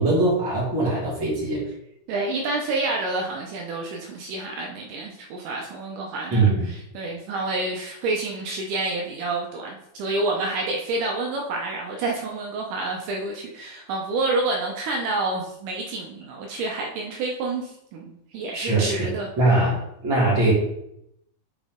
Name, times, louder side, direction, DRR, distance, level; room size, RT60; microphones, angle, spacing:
voice 1, 0.0-1.6 6.3-6.7 18.5-19.1 19.4-20.5, right 2 dB, 35° right, -6 dB, 2.4 m, -21 dB
voice 2, 2.1-19.3, right 2 dB, 80° right, 0 dB, 1.8 m, -28 dB
7.1 x 4.5 x 3.7 m, 0.78 s
omnidirectional pair, 4.5 m